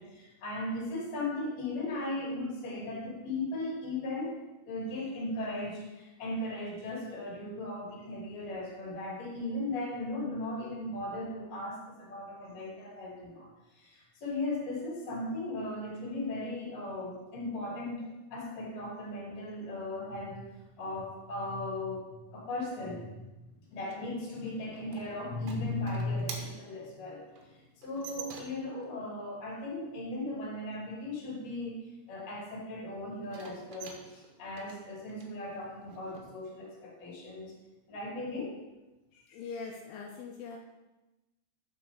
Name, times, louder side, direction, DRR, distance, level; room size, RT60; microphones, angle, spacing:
voice 1, 0.0-4.3 4.6-13.5 13.7-20.4 20.8-23.1 23.7-27.2 27.8-31.8 32.1-37.5 37.9-38.5, left 2 dB, 40° left, -4 dB, 3.0 m, -37 dB
sound 1, 23.9-28.8 33.2-36.3, right 6 dB, 75° right, 3.2 m, -48 dB
voice 2, 39.1-40.6, left 5 dB, 80° left, 0 dB, 3.2 m, -42 dB
9.3 x 7.0 x 3.5 m, 1.0 s
omnidirectional pair, 5.8 m